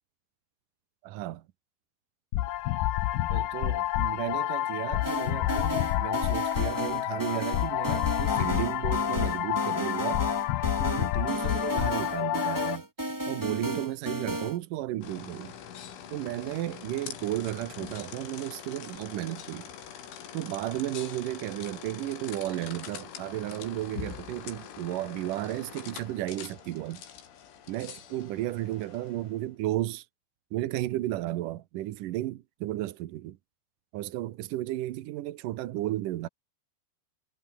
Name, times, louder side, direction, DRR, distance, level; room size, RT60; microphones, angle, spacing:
voice 1, 1.0-1.4 3.3-10.2 10.8-12.9 13.3-15.5 16.1-19.7 20.3-27.0 27.7-30.1 30.5-33.4 33.9-36.3, right 15 dB, 90° right, 1.8 m, -34 dB
sound 1, 2.3-12.8, left 15 dB, 70° left, 2.6 m, -28 dB
sound 2, 5.0-14.6, right 1 dB, 30° right, 0.3 m, -34 dB
sound 3, 15.0-29.4, left 9 dB, 90° left, 5.8 m, -44 dB
omnidirectional pair, 5.3 m